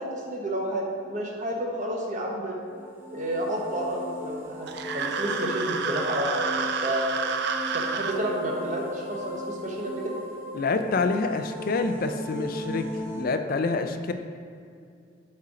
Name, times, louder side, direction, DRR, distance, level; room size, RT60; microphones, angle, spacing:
voice 1, 0.0-2.6 3.1-7.1 7.7-10.0, right 1 dB, 40° right, -1 dB, 1.0 m, -30 dB
sound 1, 2.6-13.2, left 1 dB, 10° right, 0.7 m, -37 dB
sound 2, 4.7-8.2, right 5 dB, 55° right, 0.4 m, -29 dB
voice 2, 10.5-14.1, left 3 dB, 45° left, 8 dB, 0.4 m, -27 dB
7.6 x 4.3 x 4.9 m, 2.3 s
head